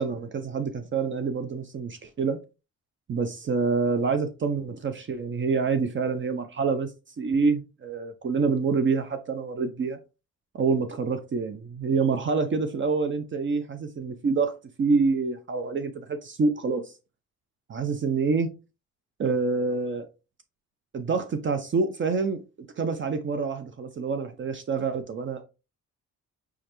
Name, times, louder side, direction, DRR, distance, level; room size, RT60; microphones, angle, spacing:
voice 1, 0.0-2.4 3.1-6.9 7.2-10.0 10.5-14.5 14.8-16.9 17.7-18.5 19.2-20.1 20.9-22.4 22.8-25.4, right 4 dB, 40° right, 0.6 m, -27 dB
4.9 x 3.2 x 3.0 m
cardioid pair, 90°, 30 cm